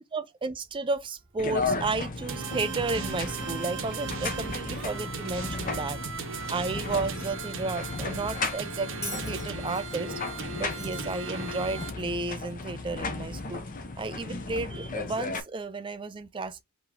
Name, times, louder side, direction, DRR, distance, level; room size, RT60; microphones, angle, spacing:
voice 1, 0.1-10.2 10.6-13.6 14.0-16.6, right 3 dB, 20° right, 0.4 m, -33 dB
sound 1, 1.4-15.4, left 3 dB, 40° left, 0.7 m, -35 dB
sound 2, 2.3-11.9, right 5 dB, 60° right, 0.8 m, -37 dB
Bell, 9.0-12.2 13.4-13.5, left 2 dB, 15° left, 1.8 m, -44 dB
4.7 x 2.9 x 3.6 m
head